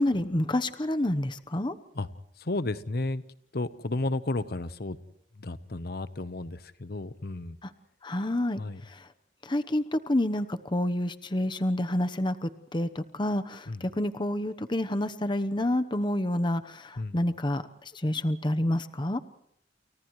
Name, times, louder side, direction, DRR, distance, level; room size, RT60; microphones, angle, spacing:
voice 1, 0.0-1.7 8.0-8.6 9.5-17.6 18.0-19.2, left 1 dB, 25° left, 10 dB, 1.0 m, -28 dB
voice 2, 2.4-3.2 3.5-5.0 5.4-7.6 8.6-8.8 13.7-13.8 17.0-17.2, left 2 dB, 60° left, 14 dB, 1.0 m, -32 dB
30.0 x 29.5 x 3.2 m, 0.75 s
head